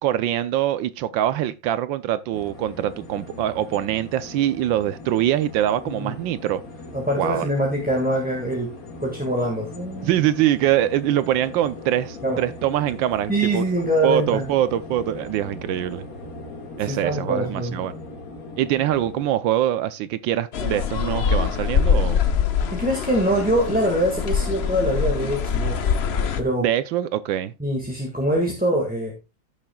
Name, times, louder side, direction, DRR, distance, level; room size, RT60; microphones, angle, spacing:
voice 1, 0.0-6.6 7.2-7.4 10.0-13.7 14.0-16.0 16.8-17.9 18.6-22.2 26.6-27.5, right 12 dB, 75° right, 1.3 m, -23 dB
sound 1, 2.3-19.2, left 2 dB, 45° left, 2.2 m, -39 dB
voice 2, 5.8-6.2 6.9-8.7 9.0-10.2 12.2-12.4 13.3-14.5 16.8-17.8 22.7-25.9 26.4-26.7 27.6-29.1, right 1 dB, 5° right, 1.4 m, -24 dB
sound 2, 20.5-26.4, left 7 dB, 65° left, 0.6 m, -23 dB
14.5 x 6.5 x 2.3 m
omnidirectional pair, 2.2 m